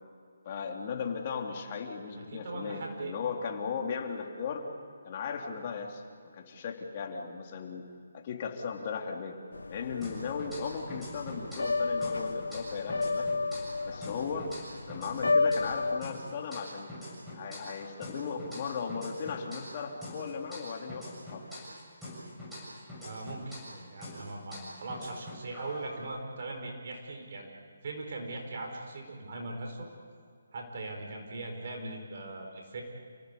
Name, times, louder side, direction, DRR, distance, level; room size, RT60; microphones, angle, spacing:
voice 1, 0.4-4.7 5.0-6.0 6.3-7.9 8.1-9.4 9.7-13.3 13.8-14.5 14.8-16.9 17.3-21.5, left 6 dB, 35° left, 2 dB, 3.2 m, -37 dB
voice 2, 2.1-3.2 23.0-27.5 27.8-29.9 30.5-32.8, right 2 dB, 50° right, 2 dB, 4.9 m, -40 dB
sound 1, 9.5-16.0, left 3 dB, 90° left, 0.7 m, -32 dB
sound 2, 10.0-11.7 12.0-15.7 16.0-19.8 20.0-23.7 24.0-26.0, left 1 dB, ahead, 7.5 m, -44 dB
29.0 x 18.0 x 8.5 m, 2.3 s
hypercardioid pair, 160°, 0 cm